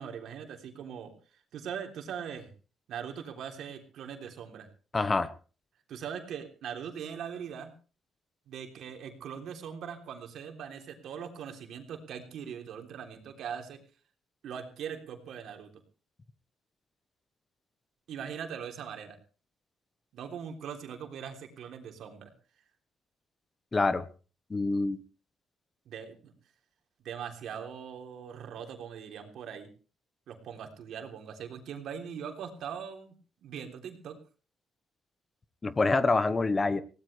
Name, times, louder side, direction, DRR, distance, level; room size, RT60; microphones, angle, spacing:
voice 1, 0.0-2.5 2.9-4.7 5.9-7.7 8.5-13.8 14.4-15.7 18.1-19.2 20.1-22.3 25.8-26.3 27.0-29.7 30.3-33.1 33.4-34.2, right 7 dB, 75° right, 4 dB, 3.4 m, -41 dB
voice 2, 4.9-5.3 23.7-24.0 24.5-25.0 35.6-36.8, left 3 dB, 30° left, 14 dB, 1.2 m, -26 dB
20.5 x 17.5 x 3.4 m, 0.36 s
cardioid pair, 90°, 0 cm